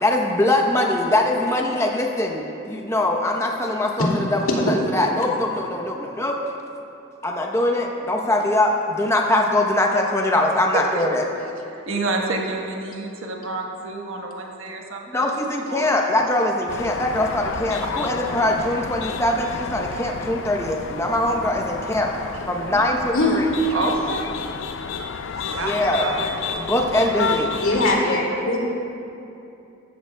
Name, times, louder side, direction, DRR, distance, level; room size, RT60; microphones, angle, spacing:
voice 1, 0.0-6.4 7.2-11.2 15.1-22.1 22.5-23.5 25.6-26.1 26.6-27.5, left 1 dB, 15° left, 1 dB, 0.8 m, -22 dB
voice 2, 10.7-11.0 11.7-15.3 15.6-16.0 17.8-18.5 23.7-24.3 25.5-25.7 26.0-26.3 27.1-27.3 28.0-28.4, right 2 dB, 80° right, 0 dB, 1.3 m, -29 dB
sound 1, 16.7-28.0, left 5 dB, 70° left, 0.5 m, -31 dB
voice 3, 27.6-28.6, left 2 dB, 90° left, -3 dB, 2.3 m, -21 dB
14.0 x 13.5 x 2.3 m, 2.7 s
head